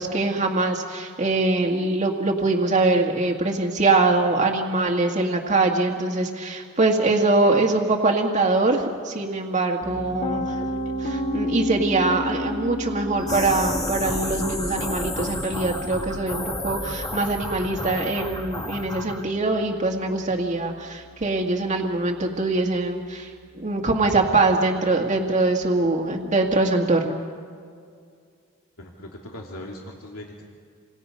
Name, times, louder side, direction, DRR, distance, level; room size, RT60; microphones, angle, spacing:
voice 1, 0.0-10.6 11.0-27.2, right 3 dB, 35° right, 0 dB, 1.8 m, -23 dB
Piano, 9.8-21.7, left 1 dB, 35° left, 2.5 m, -33 dB
sound 1, 13.2-19.2, left 1 dB, 15° left, 1.6 m, -31 dB
voice 2, 28.8-30.4, left 1 dB, 90° left, -1 dB, 2.5 m, -39 dB
28.5 x 26.5 x 5.5 m, 2.2 s
head